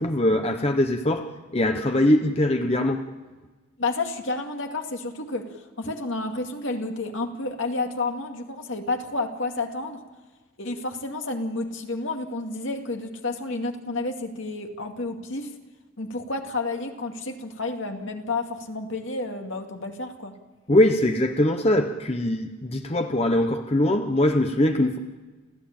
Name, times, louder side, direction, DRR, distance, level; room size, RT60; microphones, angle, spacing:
voice 1, 0.0-3.0 20.7-25.0, left 1 dB, 30° left, 6 dB, 1.0 m, -22 dB
voice 2, 3.8-10.0 10.6-15.5 16.0-20.3, left 3 dB, 65° left, 3 dB, 2.3 m, -30 dB
30.0 x 14.0 x 8.8 m, 1.3 s
head